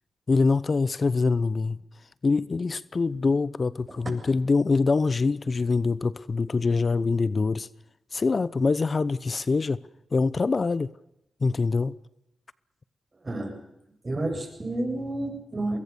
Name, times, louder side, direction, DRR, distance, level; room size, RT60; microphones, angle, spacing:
voice 1, 0.3-1.8 2.2-7.7 8.1-9.8 10.1-10.9 11.4-11.9, left 4 dB, 45° left, 0.9 m, -24 dB
voice 2, 13.2-13.6 14.0-15.8, right 2 dB, 35° right, 7.5 m, -30 dB
24.0 x 21.5 x 7.0 m
cardioid pair, 50°, 0 cm